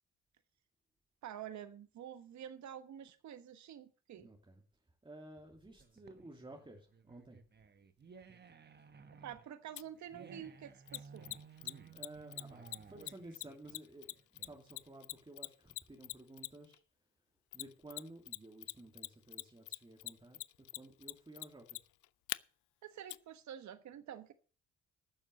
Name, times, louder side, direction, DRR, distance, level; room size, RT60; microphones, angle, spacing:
voice 1, 1.2-4.3 9.2-11.3 22.8-24.3, right 10 dB, 70° right, 1.3 m, -48 dB
voice 2, 4.1-7.4 11.9-16.8 17.5-21.8, right 2 dB, 15° right, 2.5 m, -54 dB
sound 1, 5.8-14.8, right 5 dB, 35° right, 1.3 m, -56 dB
Mechanisms, 9.8-9.9 10.9-16.7 17.5-18.4 18.6-22.4 23.1-23.2, left 20 dB, 85° left, 0.5 m, -42 dB
10.5 x 7.2 x 7.7 m
cardioid pair, 90°, 30 cm